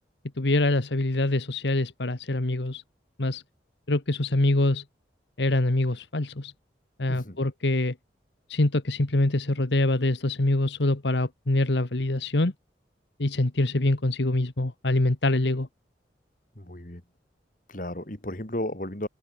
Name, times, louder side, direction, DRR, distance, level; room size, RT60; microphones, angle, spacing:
voice 1, 0.4-2.8 3.2-3.4 3.9-4.8 5.4-6.5 7.0-7.9 8.5-12.5 13.2-15.7, left 2 dB, 75° left, 1.4 m, -24 dB
voice 2, 16.6-17.0 17.7-19.1, left 1 dB, 45° left, 3.1 m, -34 dB
head